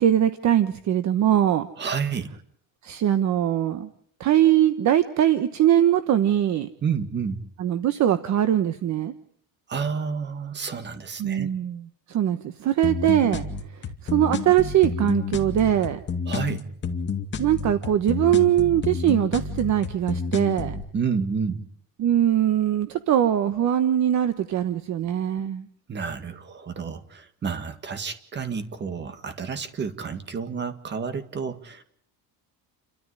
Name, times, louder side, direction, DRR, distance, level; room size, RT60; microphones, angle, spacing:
voice 1, 0.0-1.7 2.8-3.9 4.2-6.7 7.6-9.1 11.2-13.4 14.0-16.0 17.4-20.8 22.0-25.6, right 11 dB, 40° right, 11 dB, 1.2 m, -21 dB
voice 2, 1.8-2.3 6.8-7.4 9.7-11.5 16.3-16.7 20.9-21.7 25.9-31.8, right 6 dB, 25° right, 9 dB, 1.9 m, -30 dB
sound 1, 12.8-20.8, left 5 dB, 25° left, 2.3 m, -30 dB
29.0 x 13.5 x 9.8 m, 0.64 s
cardioid pair, 170°, 42 cm